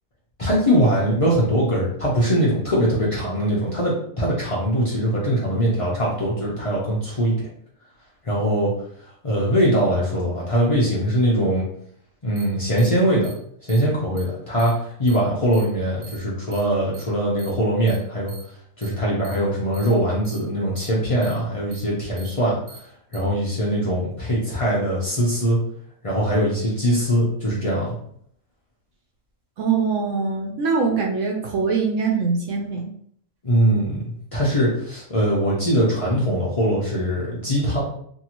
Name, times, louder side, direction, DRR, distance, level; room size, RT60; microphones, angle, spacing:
voice 1, 0.4-7.4 8.2-8.7 9.2-11.6 12.2-13.3 13.6-18.3 18.8-22.6 23.1-25.6 26.0-27.9 33.4-34.0 34.3-37.8, equal, 65° left, -6 dB, 0.3 m, -21 dB
sound 1, 12.4-12.5 12.8-12.9 13.2-13.3 13.7-13.8 14.2-14.3 14.6-14.7 15.1-15.2 15.5-15.6 16.0-16.2 16.5-16.6 16.9-17.0 17.4-17.5 17.9-18.0 18.3-18.4 18.8-18.9 19.2-19.4 19.7-19.9 20.2-20.4 20.8-20.9 21.2-21.3 21.7-21.8 22.2-22.3 22.7-22.8 23.1-23.2, right 3 dB, 85° right, 1.2 m, -43 dB
voice 2, 29.6-32.8, right 5 dB, 65° right, 0 dB, 0.8 m, -23 dB
2.7 x 2.6 x 2.9 m, 0.65 s
omnidirectional pair, 1.6 m